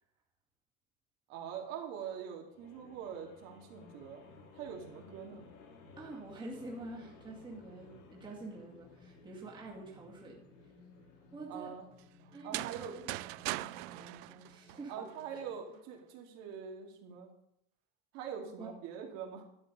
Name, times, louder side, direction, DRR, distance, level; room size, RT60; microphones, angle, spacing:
voice 1, 1.3-4.2 4.5-5.5 11.5-11.9 12.4-13.0 14.9-17.3 18.1-19.4, right 7 dB, 60° right, 1 dB, 2.6 m, -44 dB
sound 1, 2.5-15.7, left 3 dB, 65° left, 3.0 m, -58 dB
voice 2, 6.0-10.4 11.3-11.7 12.3-13.1 13.3-15.1 15.3-15.4 18.6-18.7, right 2 dB, 15° right, -4 dB, 2.2 m, -47 dB
sound 2, 12.3-15.2, right 20 dB, 90° right, 0.5 m, -40 dB
12.5 x 9.0 x 5.3 m, 0.77 s
cardioid pair, 175°, 31 cm